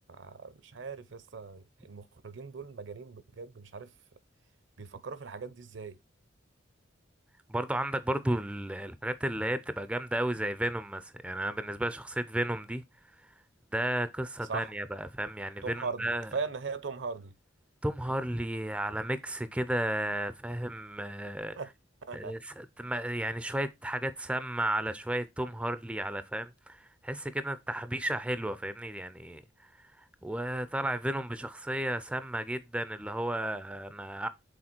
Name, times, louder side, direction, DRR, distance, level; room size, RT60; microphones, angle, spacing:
voice 1, 0.1-3.9 4.8-6.0 14.5-14.7 15.6-17.3 21.6-21.7 22.1-22.3, right 4 dB, 65° right, 0.6 m, -39 dB
voice 2, 7.5-12.8 13.7-16.3 17.8-21.6 22.1-29.4 30.2-34.3, right 1 dB, 5° right, 0.4 m, -33 dB
6.3 x 3.9 x 4.3 m
head